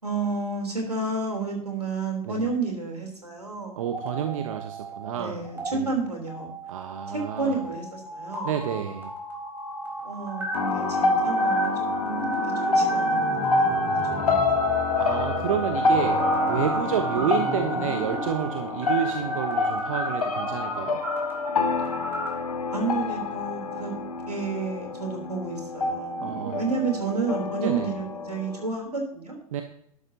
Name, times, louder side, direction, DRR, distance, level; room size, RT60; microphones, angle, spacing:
voice 1, 0.0-3.8 4.1-4.5 5.1-6.5 7.1-8.5 10.0-12.3 12.7-13.8 14.3-14.7 22.7-23.9 24.3-29.3, right 4 dB, 85° right, 1 dB, 3.4 m, -31 dB
sound 1, 3.8-5.2 5.4-5.7 6.3-22.3, right 1 dB, 10° right, 4.0 m, -34 dB
voice 2, 3.8-5.4 5.7-5.9 6.7-7.6 8.4-9.1 15.0-16.2 16.5-21.0 26.2-26.8 27.6-28.0 29.5-29.6, right 9 dB, 60° right, 6 dB, 1.1 m, -29 dB
sound 2, 10.5-28.7, left 2 dB, 75° left, 1.1 m, -27 dB
12.0 x 12.0 x 2.8 m, 0.68 s
figure-of-eight pair, 90°, 19 cm